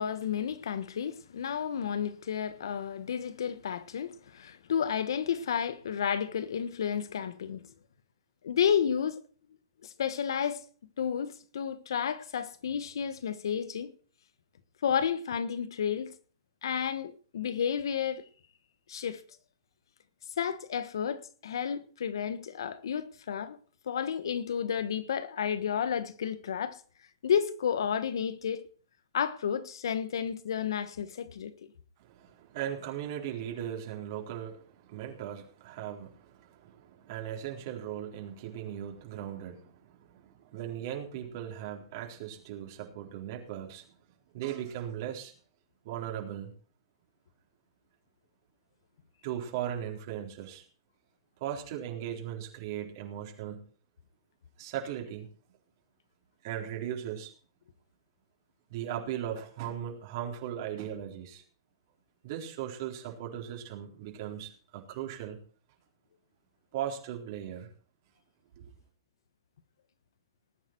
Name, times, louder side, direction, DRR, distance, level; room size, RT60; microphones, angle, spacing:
voice 1, 0.0-7.6 8.4-9.2 9.8-10.6 11.0-13.9 14.8-16.1 16.6-18.3 18.9-19.2 20.4-23.6 23.9-26.8 27.2-28.6 29.1-31.5, left 8 dB, 75° left, 1.3 m, -31 dB
voice 2, 32.0-43.9 44.3-45.3 45.8-46.5 49.2-50.6 51.4-53.6 54.6-55.3 56.4-57.3 58.7-61.4 62.2-65.4 66.7-67.7 68.6-68.7, right 10 dB, 50° right, 4.0 m, -38 dB
19.5 x 9.4 x 4.6 m
hypercardioid pair, 135°, 2 cm